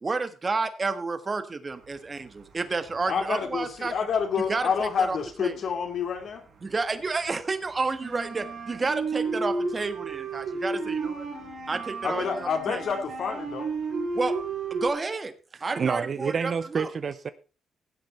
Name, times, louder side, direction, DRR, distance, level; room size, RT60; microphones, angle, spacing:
voice 1, 0.0-3.9 4.5-5.6 6.6-11.3 11.7-12.9 14.1-14.3 14.7-15.3 15.6-16.9, right 3 dB, 30° right, 1.5 m, -30 dB
sound 1, 2.2-3.1 3.4-6.4 6.7-14.9, right 3 dB, 60° right, 4.5 m, -33 dB
voice 2, 3.1-6.4 12.0-13.7, left 6 dB, 60° left, 2.4 m, -28 dB
voice 3, 15.8-17.3, right 6 dB, 45° right, 0.7 m, -28 dB
16.0 x 7.9 x 4.2 m
cardioid pair, 90°, 0 cm